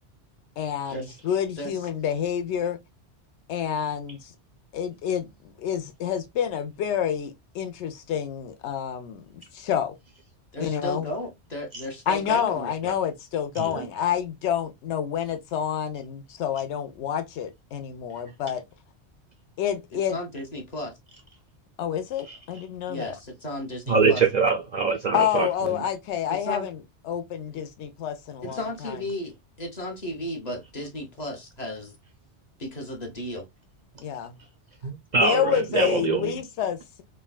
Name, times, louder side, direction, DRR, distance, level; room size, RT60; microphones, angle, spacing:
voice 1, 0.6-2.8 3.5-4.3 4.7-9.9 10.6-11.1 12.1-18.6 19.6-20.2 21.8-23.1 25.1-26.8 27.0-29.0 34.0-34.3 35.2-37.0, left 9 dB, 80° left, 0.9 m, -28 dB
voice 2, 10.5-12.9 20.1-21.0 22.9-24.2 26.3-26.7 27.5-27.6 28.4-29.3 29.6-32.0 32.6-33.4, left 1 dB, 40° left, 0.9 m, -34 dB
voice 3, 23.9-25.8 34.8-36.4, right 5 dB, 60° right, 0.5 m, -24 dB
3.6 x 2.1 x 2.2 m
omnidirectional pair, 1.2 m